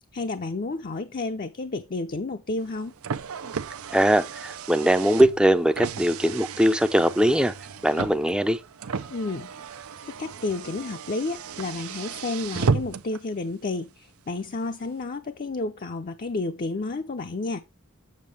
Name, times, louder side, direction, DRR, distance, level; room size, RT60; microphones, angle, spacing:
voice 1, 0.1-2.9 9.1-17.6, left 3 dB, 40° left, 0.6 m, -31 dB
Car, 2.6-13.2, right 5 dB, 80° right, 0.6 m, -33 dB
voice 2, 3.9-7.5 7.8-8.6, equal, 5° right, 0.5 m, -21 dB
7.4 x 7.2 x 3.3 m
head